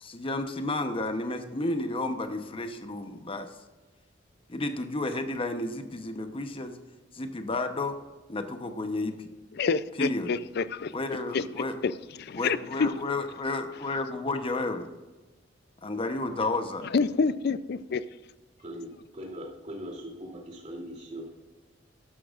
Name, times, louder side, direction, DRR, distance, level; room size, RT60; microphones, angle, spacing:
voice 1, 0.0-3.5 4.5-6.8 7.1-8.0 8.3-9.3 10.0-10.3 10.9-11.8 12.4-14.9 15.8-16.8, left 2 dB, 30° left, 7 dB, 0.9 m, -31 dB
voice 2, 9.5-10.9 11.3-12.9 16.8-18.0, left 5 dB, 55° left, 15 dB, 0.4 m, -28 dB
voice 3, 18.6-21.3, equal, 40° right, -1 dB, 2.9 m, -40 dB
13.5 x 11.5 x 2.5 m, 1.2 s
head